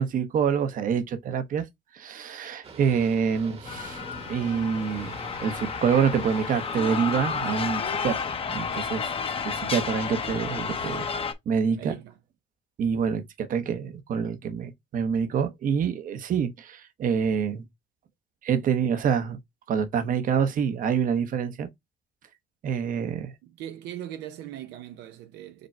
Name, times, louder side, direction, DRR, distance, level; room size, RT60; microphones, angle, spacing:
voice 1, 0.0-1.7 1.9-4.0 4.3-5.1 5.4-9.1 9.4-11.1 11.5-11.9 12.8-17.6 18.4-19.4 19.7-21.7 22.6-23.3, right 7 dB, 55° right, 0.9 m, -26 dB
Boat Water vehicle, 2.6-7.6, right 5 dB, 35° right, 1.1 m, -46 dB
sound 1, 3.7-11.3, left 6 dB, 35° left, 0.8 m, -31 dB
voice 2, 11.7-12.1 23.4-25.7, right 11 dB, 90° right, 0.6 m, -40 dB
5.1 x 2.2 x 4.4 m
cardioid pair, 110°, 17 cm